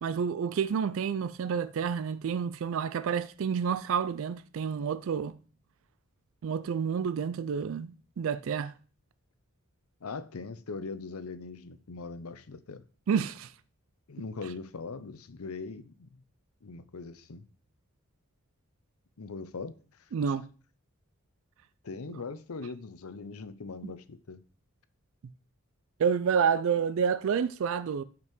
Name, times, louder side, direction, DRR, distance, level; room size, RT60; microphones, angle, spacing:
voice 1, 0.0-5.3 6.4-8.7 13.1-13.5 20.1-20.4 23.8-23.9 26.0-28.0, right 7 dB, 65° right, 0.4 m, -29 dB
voice 2, 10.0-12.8 14.1-16.1 16.6-17.4 19.2-19.8 20.2-20.3 21.8-24.4, left 4 dB, 90° left, 0.7 m, -41 dB
5.4 x 5.4 x 6.1 m
head